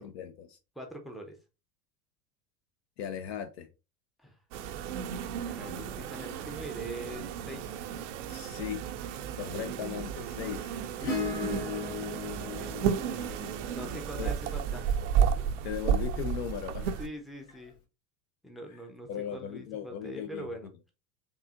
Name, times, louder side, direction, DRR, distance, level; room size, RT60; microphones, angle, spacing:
voice 1, 0.0-0.6 3.0-3.7 8.3-8.9 9.4-11.0 14.2-14.3 15.6-17.0 19.1-20.5, left 9 dB, 45° left, 0.5 m, -37 dB
voice 2, 0.8-1.4 4.2-4.4 5.4-7.7 11.8-12.8 13.1-15.2 17.0-17.7 18.4-20.7, right 1 dB, ahead, 0.6 m, -43 dB
sound 1, 4.5-17.1, right 8 dB, 50° right, 0.6 m, -33 dB
Acoustic guitar / Strum, 11.0-15.6 17.5-17.6, left 4 dB, 60° left, 1.8 m, -37 dB
4.7 x 2.7 x 2.4 m
figure-of-eight pair, 80°, 47 cm